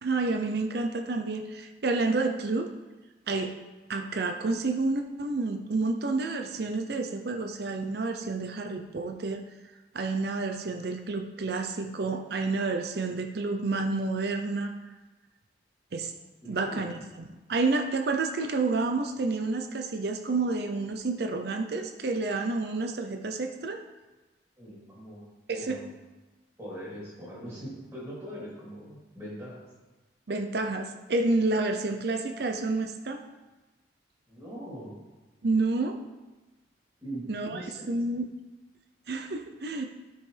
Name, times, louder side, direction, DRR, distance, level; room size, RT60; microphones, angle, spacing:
voice 1, 0.0-2.7 3.3-3.5 3.9-9.4 9.9-14.7 15.9-16.1 16.4-23.8 25.5-25.8 30.3-33.2 35.4-36.0 37.3-38.3 39.1-39.9, right 3 dB, 55° right, 5 dB, 0.5 m, -29 dB
voice 2, 16.4-17.0 24.6-25.2 25.5-25.9 26.6-29.7 34.3-35.0 37.0-37.9, equal, 15° right, -7 dB, 3.1 m, -41 dB
13.0 x 5.4 x 3.3 m, 1.2 s
head